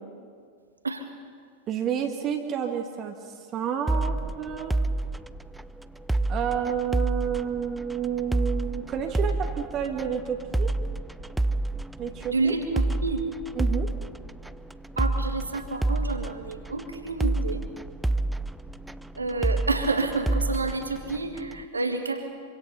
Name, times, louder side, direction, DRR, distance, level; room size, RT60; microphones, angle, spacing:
voice 1, 1.7-3.2 3.5-4.7 6.3-10.7 12.0-12.5 13.6-13.9, right 8 dB, 30° right, 3 dB, 1.9 m, -30 dB
sound 1, 3.9-21.6, right 2 dB, 5° right, 0.5 m, -29 dB
voice 2, 12.3-13.2 15.0-17.7 19.2-22.3, right 3 dB, 80° right, 5 dB, 2.2 m, -29 dB
26.0 x 25.0 x 5.7 m, 2.1 s
figure-of-eight pair, 90°, 0 cm